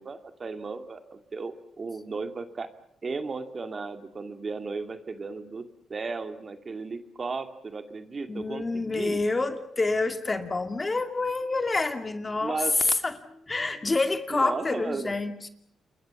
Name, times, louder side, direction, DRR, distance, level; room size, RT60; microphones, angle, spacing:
voice 1, 0.0-2.7 3.0-9.2 12.4-12.7 14.3-15.1, right 4 dB, 40° right, 8 dB, 2.2 m, -35 dB
voice 2, 8.3-15.5, left 3 dB, 25° left, 8 dB, 2.4 m, -27 dB
28.0 x 22.0 x 7.0 m, 0.69 s
cardioid pair, 90°, 0 cm